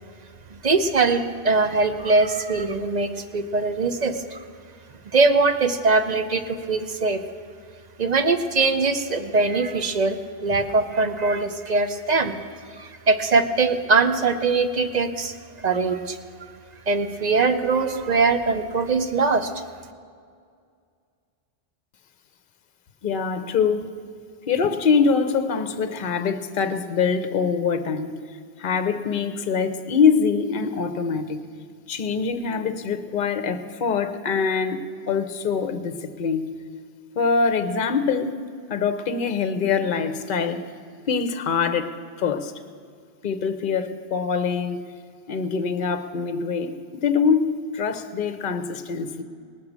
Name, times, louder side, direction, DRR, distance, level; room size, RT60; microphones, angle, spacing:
voice 1, 0.5-4.4 5.1-7.2 8.0-12.4 12.8-15.3 15.6-16.2 16.9-19.5, right 3 dB, 45° right, 8 dB, 0.7 m, -22 dB
voice 2, 23.0-23.9 24.5-28.1 28.6-31.4 31.9-36.4 37.2-38.3 38.7-40.6 41.1-41.9 42.2-42.5 43.2-44.8 45.3-49.2, left 5 dB, 50° left, 10 dB, 0.9 m, -24 dB
19.0 x 6.6 x 7.2 m, 2.2 s
omnidirectional pair, 1.1 m